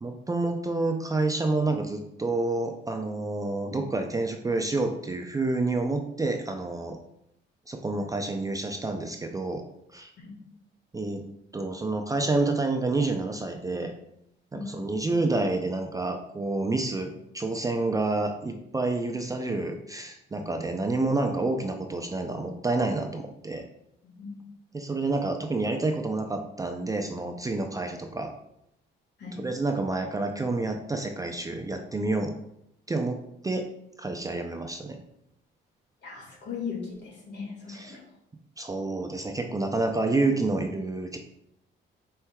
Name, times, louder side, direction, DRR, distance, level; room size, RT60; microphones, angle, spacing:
voice 1, 0.0-7.0 7.7-9.6 9.9-10.1 10.9-11.2 11.5-13.9 14.5-23.6 24.7-28.3 29.4-32.3 32.9-33.2 33.4-33.7 34.0-35.0 37.7-38.0 38.6-41.2, right 2 dB, 15° right, 4 dB, 0.4 m, -28 dB
voice 2, 24.0-24.3 29.2-29.4 36.0-38.0, left 5 dB, 60° left, -1 dB, 1.7 m, -38 dB
4.5 x 4.4 x 2.3 m, 0.78 s
cardioid pair, 90°, 20 cm